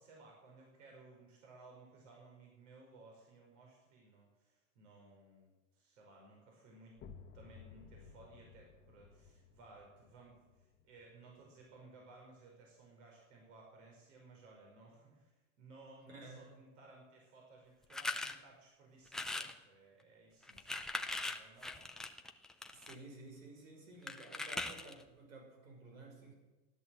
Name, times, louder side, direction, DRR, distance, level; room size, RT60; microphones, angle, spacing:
voice 1, 0.0-7.0 7.3-22.1 22.5-22.6, right 3 dB, 65° right, 0 dB, 5.0 m, -59 dB
sound 1, 6.9-12.5, left 6 dB, 25° left, 1.2 m, -58 dB
voice 2, 16.1-16.5 22.7-26.3, right 2 dB, 85° right, 2 dB, 6.1 m, -53 dB
sound 2, 17.9-18.3 19.1-19.6 20.4-22.9 24.1-25.0, left 2 dB, ahead, 0.4 m, -40 dB
15.5 x 11.0 x 7.7 m, 1.1 s
supercardioid pair, 140°, 40 cm